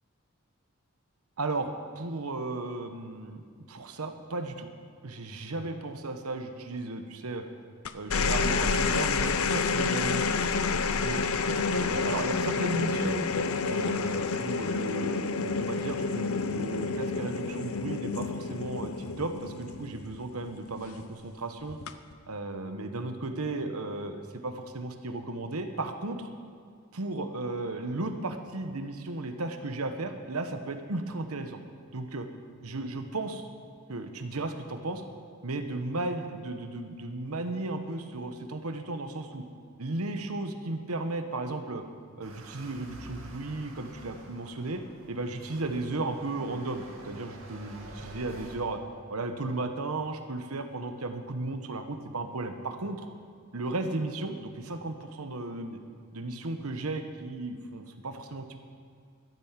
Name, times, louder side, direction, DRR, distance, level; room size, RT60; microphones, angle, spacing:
voice 1, 1.4-3.4 3.7-4.7 5.0-7.5 7.9-10.3 10.7-11.3 11.7-13.3 13.6-21.8 22.3-26.3 26.9-31.6 31.9-32.3 32.6-33.5 33.9-35.0 35.4-39.4 39.8-41.8 42.2-48.8 49.1-53.1 53.5-55.8 56.1-58.6, right 2 dB, 90° right, 6 dB, 1.1 m, -35 dB
sound 1, 7.8-20.5 21.7-22.1, left 4 dB, 80° left, 0.7 m, -29 dB
sound 2, 42.2-48.6, right 1 dB, 70° right, 2.0 m, -48 dB
12.5 x 10.5 x 7.3 m, 2.2 s
head